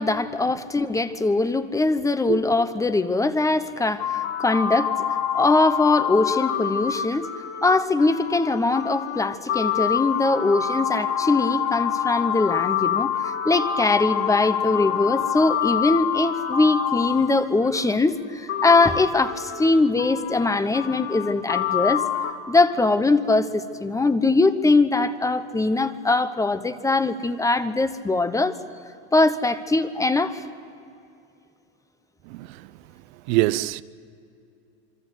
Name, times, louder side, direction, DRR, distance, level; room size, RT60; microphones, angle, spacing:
voice 1, 0.0-4.9 5.3-7.3 7.6-22.0 22.5-28.5 29.1-30.4, left 3 dB, 10° left, 1.0 m, -21 dB
sound 1, 4.0-17.8 18.5-22.3, left 8 dB, 50° left, 2.1 m, -26 dB
voice 2, 32.3-32.7 33.3-33.8, right 18 dB, 65° right, 0.8 m, -24 dB
26.5 x 24.0 x 8.2 m
supercardioid pair, 140°, 35 cm